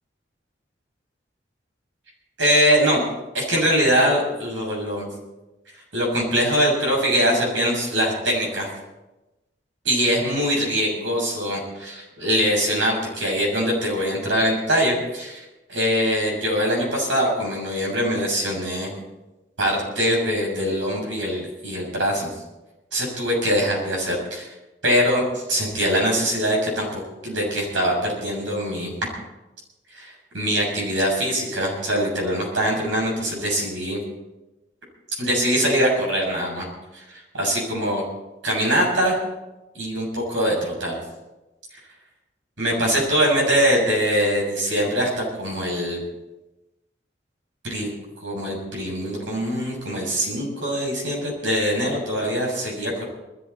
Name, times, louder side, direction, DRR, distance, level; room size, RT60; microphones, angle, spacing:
voice 1, 2.4-3.0 3.3-5.1 5.9-8.7 9.9-18.9 19.6-22.3 22.9-24.5 24.8-28.9 29.9-34.0 35.2-36.7 36.9-38.0 38.4-39.2 39.7-41.0 42.6-46.0 47.6-47.9 48.2-53.1, equal, 85° right, -1 dB, 7.2 m, -23 dB
21.0 x 14.0 x 4.3 m, 1.0 s
head